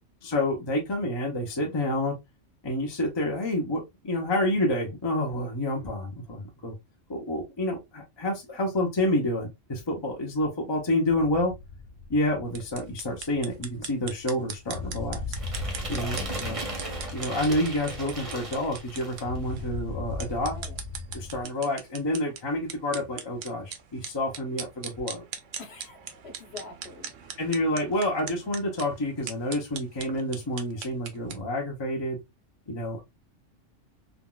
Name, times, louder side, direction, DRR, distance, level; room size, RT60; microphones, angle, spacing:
voice 1, 0.2-2.2 2.6-6.7 7.1-11.5 12.1-15.5 15.9-16.7 17.1-20.5 21.1-25.2 27.4-32.2 32.7-33.1, left 1 dB, 25° left, 0.7 m, -28 dB
sound 1, 11.1-21.4, left 3 dB, 85° left, 0.9 m, -38 dB
sound 2, 12.5-31.4, right 7 dB, 80° right, 1.0 m, -42 dB
sound 3, 15.4-19.4, right 1 dB, 30° right, 0.9 m, -36 dB
voice 2, 15.8-16.4 20.4-20.8 25.6-27.1, left 2 dB, 60° left, 1.1 m, -44 dB
3.7 x 2.4 x 2.2 m
omnidirectional pair, 1.3 m